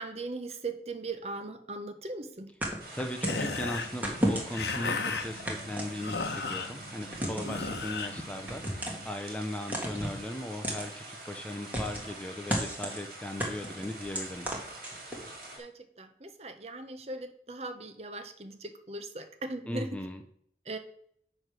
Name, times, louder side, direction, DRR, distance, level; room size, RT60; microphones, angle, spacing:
voice 1, 0.0-2.5 15.6-15.7 16.0-20.0 20.7-20.8, right 2 dB, 35° right, 8 dB, 0.7 m, -39 dB
sound 1, 2.6-3.5 4.0-4.7 5.4-6.4 7.1-7.6 8.5-9.1 9.7-10.2 10.6-10.9 11.7-12.1 12.5-13.0 13.4-15.3, equal, 10° right, 1.3 m, -33 dB
voice 2, 2.7-14.5 19.7-20.2, left 1 dB, 5° left, 6 dB, 0.5 m, -38 dB
sound 2, 2.8-15.6, right 2 dB, 55° right, 2.1 m, -46 dB
sound 3, 3.2-9.1, left 4 dB, 70° left, 0.9 m, -36 dB
9.1 x 3.3 x 6.1 m, 0.66 s
head